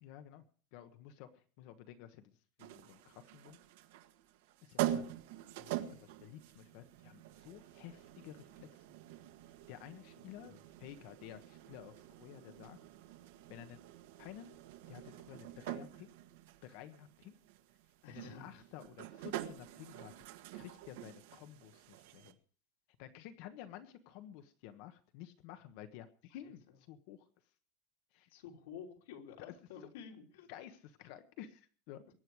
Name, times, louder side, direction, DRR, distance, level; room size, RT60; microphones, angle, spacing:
voice 1, 0.0-0.4 0.7-3.6 4.6-5.0 5.6-8.8 9.7-12.8 13.5-13.8 14.2-14.5 14.9-16.1 16.6-17.3 18.1-20.2 20.5-22.4 23.0-26.6 26.9-27.2 28.1-28.3 29.4-29.5 30.5-32.0, left 11 dB, 50° left, 9 dB, 1.2 m, -52 dB
sound 1, 2.6-22.3, right 12 dB, 70° right, 1.8 m, -45 dB
voice 2, 18.0-18.5 26.4-26.5 28.3-30.5, left 7 dB, 90° left, 0 dB, 3.2 m, -51 dB
23.0 x 10.0 x 4.8 m, 0.44 s
supercardioid pair, 180°, 0 cm